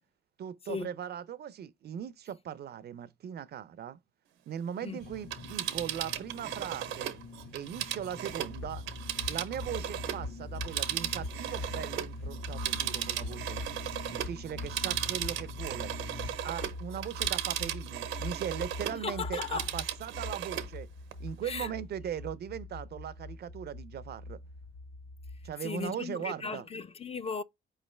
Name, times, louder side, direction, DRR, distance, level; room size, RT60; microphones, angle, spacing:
voice 1, 0.4-4.0 4.5-7.2 7.5-8.8 9.3-13.6 14.1-15.9 16.4-20.9 21.2-24.4 25.4-26.6, right 9 dB, 55° right, 0.5 m, -39 dB
sound 1, 5.0-16.4, left 4 dB, 50° left, 0.9 m, -48 dB
Telephone, 5.2-10.3 10.6-19.0 19.3-20.7 21.1-21.2, right 12 dB, 90° right, 0.8 m, -36 dB
sound 2, 8.3-25.5, left 2 dB, 85° left, 1.8 m, -42 dB
voice 2, 18.9-19.7 21.4-21.7 25.6-27.4, left 5 dB, 30° left, 0.4 m, -36 dB
4.7 x 3.1 x 3.1 m
cardioid pair, 90°, 20 cm